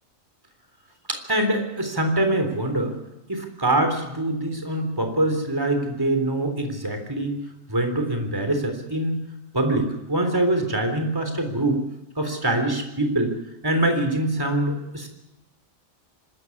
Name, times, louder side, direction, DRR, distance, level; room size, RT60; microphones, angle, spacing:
voice 1, 1.1-2.9 3.3-7.3 7.7-9.2 9.5-11.8 12.2-13.3 13.6-15.1, right 1 dB, 15° right, 5 dB, 3.5 m, -24 dB
25.0 x 14.0 x 9.6 m, 0.93 s
omnidirectional pair, 1.3 m